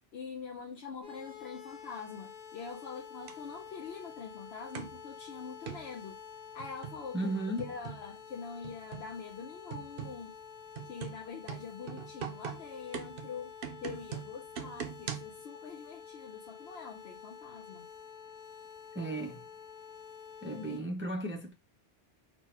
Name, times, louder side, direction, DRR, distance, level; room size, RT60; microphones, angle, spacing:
voice 1, 0.1-6.2 6.5-7.3 7.6-10.4 10.8-13.5 13.8-17.9, left 5 dB, 65° left, 0.9 m, -44 dB
sound 1, 1.0-20.8, left 7 dB, 40° left, 1.2 m, -49 dB
sound 2, 3.3-3.4 4.7-5.0 5.7-5.9 6.6-7.0 7.6-8.1 8.6-9.1 9.7-10.2 10.7-15.4, right 8 dB, 60° right, 0.8 m, -41 dB
voice 2, 7.1-7.7 18.9-19.5 20.4-21.5, right 1 dB, 15° right, 0.5 m, -35 dB
4.1 x 2.3 x 4.2 m
omnidirectional pair, 1.2 m